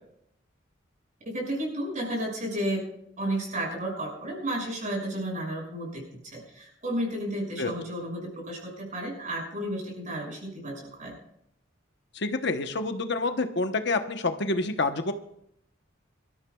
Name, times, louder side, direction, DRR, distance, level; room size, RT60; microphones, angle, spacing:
voice 1, 1.3-2.8 3.2-11.1, right 1 dB, 40° right, 0 dB, 6.2 m, -32 dB
voice 2, 12.1-15.1, left 3 dB, 60° left, 7 dB, 1.0 m, -28 dB
24.5 x 13.0 x 2.3 m, 0.73 s
head